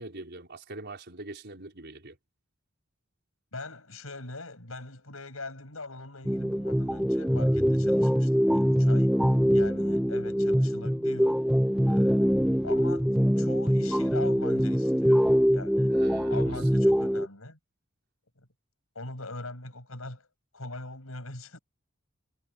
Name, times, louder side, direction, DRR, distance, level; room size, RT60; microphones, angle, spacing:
voice 1, 0.0-2.2 15.9-16.6 17.0-17.1, right 2 dB, 55° right, 5.1 m, -43 dB
voice 2, 3.5-9.1 9.5-11.4 11.9-12.4 12.6-13.1 13.4-15.3 15.5-15.9 16.3-17.6 18.4-18.5 19.0-20.3 20.5-21.6, left 2 dB, 85° left, 7.3 m, -41 dB
sound 1, 6.3-17.3, equal, 5° right, 1.3 m, -24 dB
head